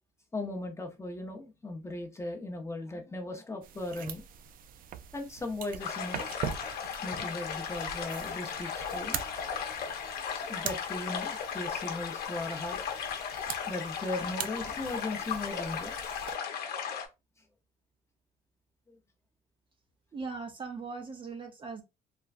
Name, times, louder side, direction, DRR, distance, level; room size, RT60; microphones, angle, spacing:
voice 1, 0.3-4.2 5.1-6.3 7.0-9.3 10.5-12.8 13.7-16.0, left 2 dB, 15° left, 0.6 m, -37 dB
sound 1, 3.6-16.4, right 9 dB, 55° right, 0.4 m, -43 dB
sound 2, 5.8-17.1, left 7 dB, 65° left, 0.8 m, -36 dB
voice 2, 20.1-21.8, right 4 dB, 30° right, 0.7 m, -39 dB
3.2 x 2.2 x 2.4 m
cardioid pair, 110°, 17 cm